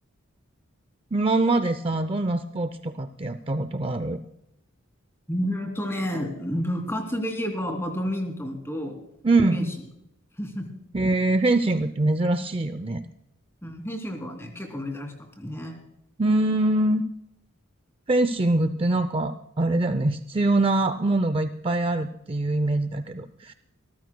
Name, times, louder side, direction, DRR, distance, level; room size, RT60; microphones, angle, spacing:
voice 1, 1.1-4.2 9.2-9.7 10.9-13.1 16.2-17.0 18.1-23.5, right 2 dB, 25° right, 11 dB, 0.5 m, -23 dB
voice 2, 5.3-8.9 9.5-9.7 10.4-10.7 13.6-15.8, equal, 10° left, 3 dB, 2.7 m, -30 dB
26.5 x 14.0 x 2.2 m, 0.82 s
head